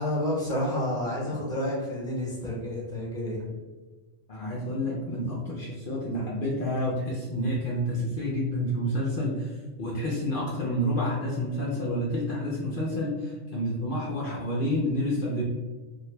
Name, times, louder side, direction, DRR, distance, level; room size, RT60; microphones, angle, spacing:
voice 1, 0.0-3.4, left 1 dB, 5° left, -5 dB, 0.7 m, -29 dB
voice 2, 4.3-15.4, equal, 60° left, -5 dB, 0.6 m, -29 dB
2.9 x 2.5 x 3.1 m, 1.3 s
omnidirectional pair, 1.2 m